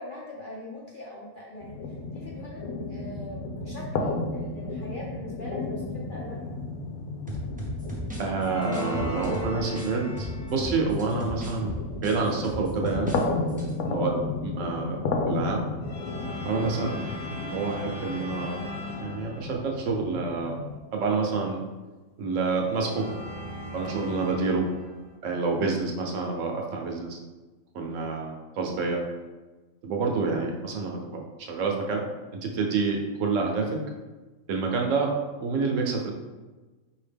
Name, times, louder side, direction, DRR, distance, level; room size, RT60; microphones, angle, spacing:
voice 1, 0.0-6.5 13.8-14.1 16.8-17.0, left 2 dB, 55° left, -5 dB, 0.5 m, -42 dB
sound 1, 1.6-20.8, left 3 dB, 80° left, 1.0 m, -33 dB
sound 2, 7.3-9.9 10.2-13.2 13.5-13.7, equal, 10° right, 0.4 m, -35 dB
voice 2, 8.2-13.2 13.9-14.1 14.4-15.0 15.3-15.7 16.4-17.1 17.4-18.6 19.0-20.6 20.9-21.6 22.2-23.1 23.7-24.7 25.2-27.2 27.7-29.0 29.8-32.0 32.3-33.8 34.5-35.1 35.4-36.1, right 4 dB, 65° right, 1 dB, 1.0 m, -28 dB
sound 3, 8.4-10.8 15.8-19.8 22.7-25.1, equal, 35° left, 1.2 m, -38 dB
4.8 x 2.8 x 3.4 m, 1.2 s
omnidirectional pair, 1.5 m